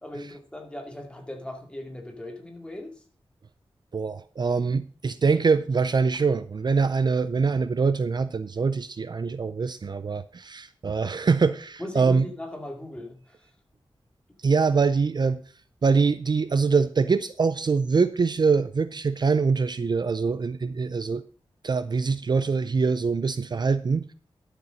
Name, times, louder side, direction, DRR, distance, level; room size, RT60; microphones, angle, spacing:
voice 1, 0.0-2.9 11.8-13.4, left 1 dB, 10° left, 2 dB, 2.3 m, -38 dB
voice 2, 3.9-12.3 14.4-15.4 15.8-21.2 21.6-24.1, right 5 dB, 50° right, 14 dB, 0.5 m, -24 dB
12.0 x 6.8 x 5.1 m, 0.41 s
wide cardioid pair, 105°, 10 cm